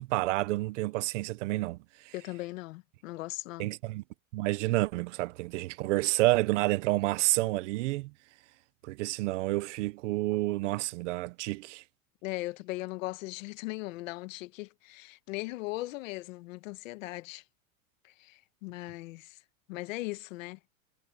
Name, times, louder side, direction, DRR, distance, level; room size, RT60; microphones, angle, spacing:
voice 1, 0.0-1.8 2.0-2.1 3.6-4.0 4.3-8.1 8.8-11.8, right 19 dB, 55° right, 0.7 m, -29 dB
voice 2, 2.1-3.7 12.2-17.4 18.2-19.4 19.7-20.6, left 20 dB, 60° left, 1.3 m, -38 dB
supercardioid pair, 170°, 43 cm